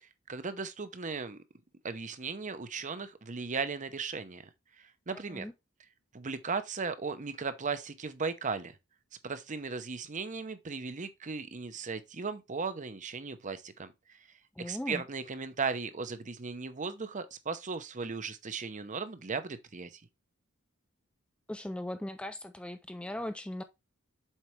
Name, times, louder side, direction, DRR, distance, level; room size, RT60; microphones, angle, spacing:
voice 1, 0.3-1.4 1.8-4.5 4.8-5.5 6.1-8.8 9.2-14.2 14.6-20.0, right 4 dB, 35° right, 0.7 m, -37 dB
voice 2, 14.6-15.0 21.5-23.6, left 1 dB, 5° left, 0.3 m, -38 dB
7.3 x 4.7 x 3.2 m
head